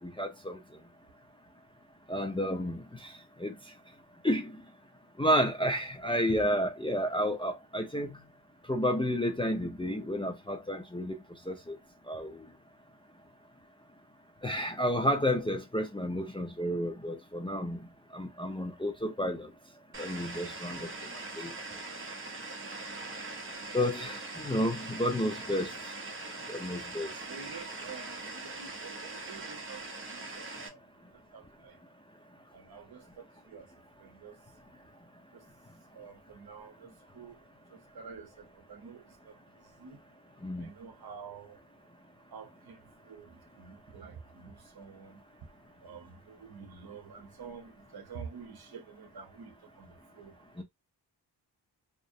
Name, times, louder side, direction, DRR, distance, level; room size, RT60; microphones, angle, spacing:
voice 1, 0.0-0.6 2.1-3.1 3.4-3.5 4.2-4.5 5.2-8.1 8.7-11.1 11.5-11.8 12.1-12.4 14.4-17.9 18.1-19.5 20.0-20.9 21.4-21.5 23.7-25.7 26.5-27.1 40.4-40.7 50.6-50.7, equal, 15° left, 0.4 m, -31 dB
sound 1, 19.9-30.7, right 3 dB, 30° right, 0.6 m, -42 dB
voice 2, 27.3-29.8 30.1-30.8 31.3-31.7 32.5-33.7 34.0-34.3 35.9-37.4 37.9-39.3 39.8-40.0 40.6-41.6 42.3-42.8 43.1-45.2 45.8-49.9 50.2-50.3, right 6 dB, 60° right, 0.8 m, -48 dB
2.4 x 2.0 x 2.6 m
wide cardioid pair, 100°, 43 cm